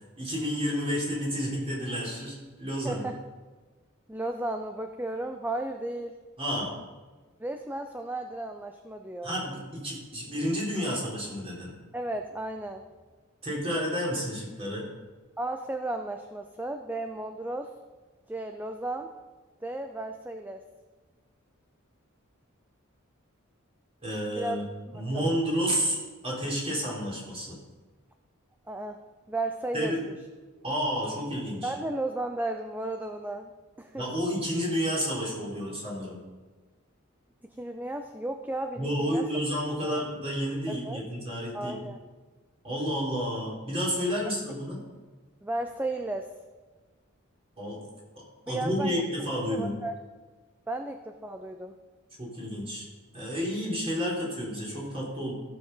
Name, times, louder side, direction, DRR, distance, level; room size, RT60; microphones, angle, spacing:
voice 1, 0.2-3.0 6.4-6.7 9.2-11.7 13.4-14.9 24.0-24.7 24.9-26.0 26.2-27.6 29.7-30.0 30.6-31.7 33.9-36.2 38.8-41.7 42.6-44.8 47.6-47.8 48.5-49.7 52.2-52.9 53.1-55.3, equal, 30° right, -4 dB, 3.7 m, -30 dB
voice 2, 2.8-3.2 4.1-6.2 7.4-9.3 11.9-12.8 15.4-17.7 18.3-19.1 19.6-20.6 24.4-24.6 24.9-25.4 28.7-30.2 31.6-33.5 33.8-34.0 37.4-39.2 39.8-40.0 40.7-41.0 41.5-42.0 45.4-46.3 48.5-49.0 49.5-49.9 50.7-51.7, right 2 dB, 10° right, 5 dB, 0.5 m, -34 dB
15.0 x 6.7 x 5.5 m, 1.3 s
head